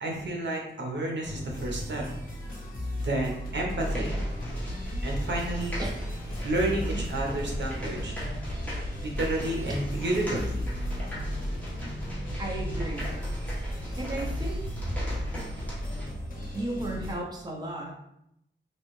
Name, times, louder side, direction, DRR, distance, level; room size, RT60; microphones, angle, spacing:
voice 1, 0.0-2.0 3.0-4.2 5.0-5.8 6.4-8.1 9.0-10.7, right 1 dB, 75° right, -1 dB, 0.8 m, -31 dB
sound 1, 1.2-17.1, left 1 dB, 50° left, 1.0 m, -36 dB
sound 2, 3.8-16.1, right 1 dB, 5° left, 1.0 m, -36 dB
voice 2, 12.4-13.1 13.8-14.6 16.5-17.9, right 1 dB, 20° right, -1 dB, 0.5 m, -34 dB
3.2 x 2.5 x 3.1 m, 0.79 s
wide cardioid pair, 130°, 19 cm